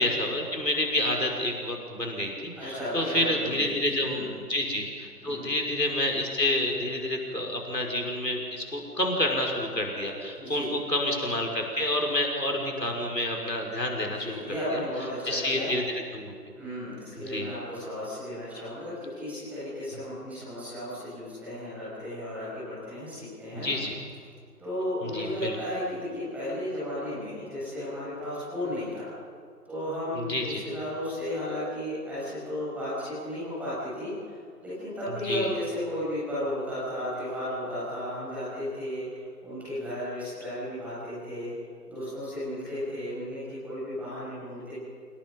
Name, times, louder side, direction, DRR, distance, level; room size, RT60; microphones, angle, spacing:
voice 1, 0.0-14.4 14.7-14.8 15.3-15.8 16.1-16.3 17.2-17.5 23.5-24.0 25.0-25.6 30.2-30.6 35.2-35.5, left 1 dB, 85° left, 0 dB, 5.8 m, -29 dB
voice 2, 2.5-4.4 5.2-5.4 10.3-10.7 14.0-15.7 16.6-23.7 24.6-29.1 29.7-34.3 34.6-41.5 41.9-44.7, left 1 dB, 5° right, -11 dB, 7.9 m, -34 dB
27.5 x 25.0 x 5.5 m, 2.1 s
figure-of-eight pair, 155°, 48 cm